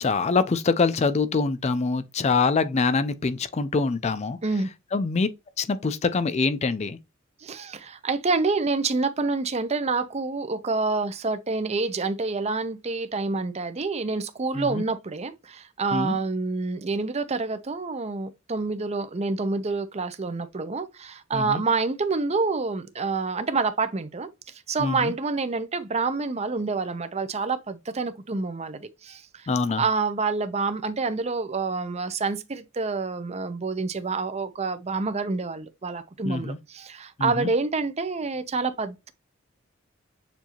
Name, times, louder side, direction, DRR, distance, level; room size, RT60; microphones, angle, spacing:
voice 1, 0.0-4.4 4.9-5.3 5.6-7.0 14.5-14.8 15.9-16.2 21.3-21.6 24.8-25.1 29.5-29.8 36.2-36.6 37.2-37.5, left 4 dB, 35° left, 0.4 m, -24 dB
voice 2, 7.4-24.3 24.7-29.5 29.8-39.1, right 4 dB, 30° right, 0.6 m, -27 dB
6.9 x 2.6 x 2.9 m
head